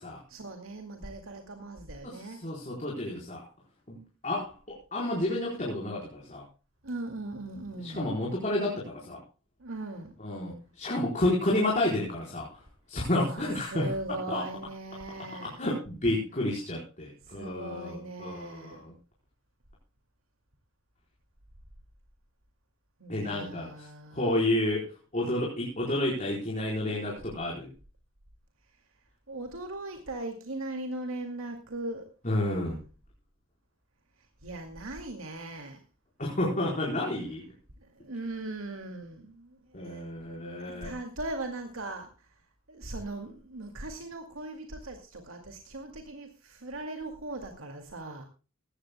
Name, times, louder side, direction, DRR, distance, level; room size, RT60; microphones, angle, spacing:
voice 1, 0.3-2.4 6.8-8.2 9.6-10.1 13.2-15.6 17.2-18.8 23.0-24.4 29.3-32.1 34.4-35.8 37.8-40.1 40.6-42.3 42.7-48.2, right 2 dB, 75° right, 4 dB, 2.3 m, -39 dB
voice 2, 2.0-3.5 3.9-6.4 7.8-9.2 10.2-12.6 12.9-13.9 14.3-14.4 15.4-18.9 23.1-27.7 32.2-32.8 36.2-37.4 39.7-40.9, left 1 dB, 35° left, -3 dB, 4.4 m, -30 dB
18.5 x 16.5 x 2.2 m, 0.33 s
head